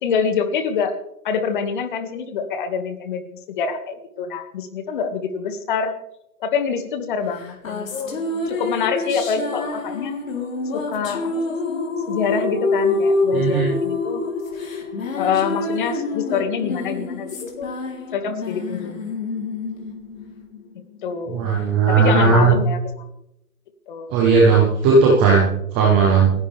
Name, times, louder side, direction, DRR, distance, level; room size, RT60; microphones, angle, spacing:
voice 1, 0.0-0.9 1.2-3.3 3.6-5.9 6.4-8.2 8.5-10.2 10.7-14.2 15.2-17.7 18.1-19.1 21.0-21.5 21.9-22.8 23.9-24.1, left 6 dB, 30° left, 8 dB, 1.9 m, -26 dB
sound 1, 7.3-21.0, left 3 dB, 55° left, 3.6 m, -26 dB
voice 2, 13.3-13.7 21.3-22.5 24.1-26.3, right 4 dB, 5° right, -3 dB, 0.6 m, -16 dB
29.5 x 11.0 x 3.4 m, 0.82 s
hypercardioid pair, 145°, 46 cm